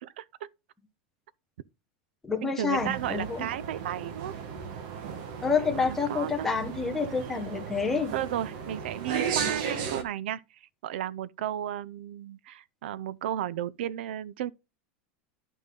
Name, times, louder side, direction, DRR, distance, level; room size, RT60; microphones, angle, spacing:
voice 1, 0.0-0.5 2.4-4.3 5.6-6.5 8.1-10.4 10.8-14.5, right 11 dB, 80° right, 0.5 m, -34 dB
voice 2, 2.2-3.4 5.4-8.1, left 5 dB, 5° left, 1.0 m, -28 dB
sound 1, 2.7-10.0, right 6 dB, 45° right, 1.3 m, -35 dB
11.5 x 5.4 x 3.7 m
supercardioid pair, 180°, 6 cm